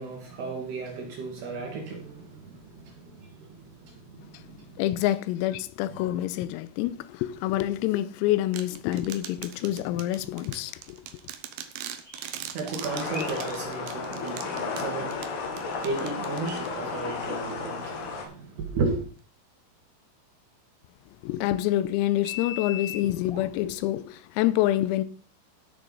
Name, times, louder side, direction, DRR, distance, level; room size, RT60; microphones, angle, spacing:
voice 1, 0.0-4.8 12.4-19.1, right 3 dB, 60° right, 3.3 m, -34 dB
voice 2, 4.8-11.0 21.2-25.0, left 14 dB, 90° left, 3.4 m, -27 dB
sound 1, 8.5-17.0, right 10 dB, 85° right, 2.3 m, -41 dB
sound 2, 12.0-15.9 16.7-16.8 18.0-18.1 22.2-23.4, left 8 dB, 35° left, 0.9 m, -41 dB
sound 3, 12.8-18.2, left 4 dB, 70° left, 4.3 m, -33 dB
16.0 x 6.7 x 3.9 m
omnidirectional pair, 6.0 m